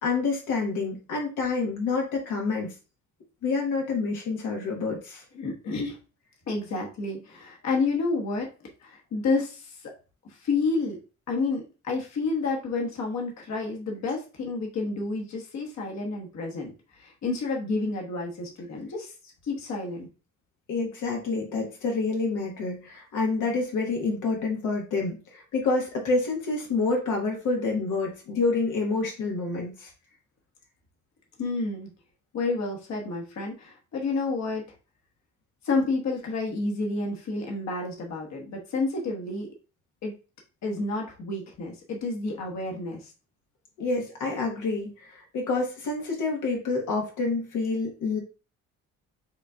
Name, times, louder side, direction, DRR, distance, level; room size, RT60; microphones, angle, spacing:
voice 1, 0.0-2.7 3.4-5.2 20.7-29.9 43.8-48.2, left 3 dB, 85° left, 0 dB, 1.3 m, -28 dB
voice 2, 5.3-6.0 6.5-8.5 8.8-9.9 10.3-11.0 11.3-19.1 19.4-20.1 31.4-31.9 32.3-34.6 35.6-39.5 40.0-40.1 40.6-43.1, left 3 dB, 65° left, 0 dB, 1.3 m, -30 dB
7.1 x 2.7 x 2.3 m, 0.33 s
cardioid pair, 90°, 30 cm